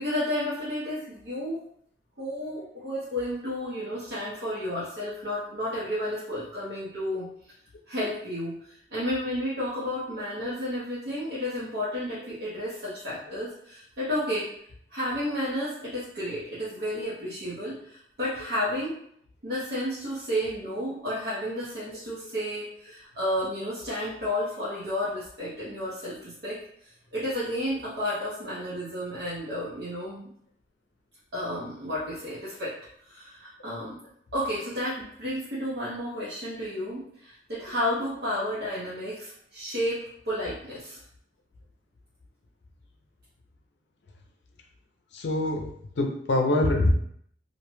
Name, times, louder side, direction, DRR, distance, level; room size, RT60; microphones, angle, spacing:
voice 1, 0.0-1.6 2.2-7.3 7.9-14.5 14.9-19.0 19.4-26.6 27.1-30.3 31.3-32.8 33.0-34.0 34.3-41.0, left 1 dB, 65° right, -9 dB, 0.7 m, -32 dB
voice 2, 45.1-46.9, left 2 dB, 80° left, 3 dB, 0.5 m, -25 dB
2.6 x 2.1 x 3.0 m, 0.67 s
head